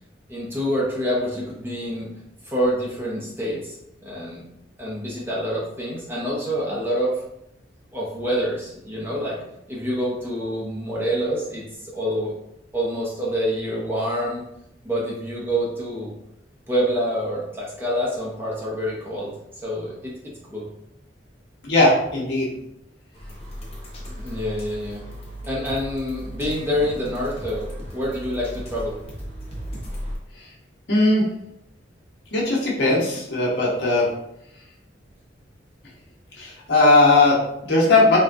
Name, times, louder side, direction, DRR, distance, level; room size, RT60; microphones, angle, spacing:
voice 1, 0.3-2.1 2.4-3.8 4.0-4.4 4.8-7.2 7.9-9.4 9.7-12.3 12.7-14.4 14.8-16.1 16.7-19.3 19.6-20.1 20.5-20.7 24.0-25.0 25.4-29.0, equal, 10° right, -5 dB, 0.6 m, -26 dB
voice 2, 21.6-22.5 30.9-31.3 32.3-34.1 36.4-38.2, left 2 dB, 65° left, -4 dB, 1.0 m, -18 dB
sound 1, 23.1-30.2, equal, 35° left, 0.8 m, -36 dB
3.5 x 2.2 x 2.6 m, 0.81 s
head